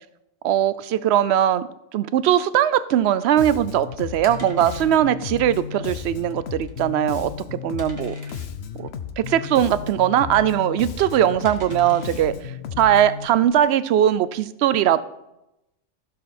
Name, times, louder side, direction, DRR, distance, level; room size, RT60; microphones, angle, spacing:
voice 1, 0.4-8.2 9.2-12.4 12.8-15.0, right 11 dB, 65° right, 16 dB, 0.8 m, -20 dB
sound 1, 3.0-13.6, right 1 dB, 15° right, 1.7 m, -49 dB
Bass guitar, 3.4-13.3, left 7 dB, 60° left, 1.0 m, -34 dB
15.0 x 6.8 x 4.3 m, 0.89 s
omnidirectional pair, 1.3 m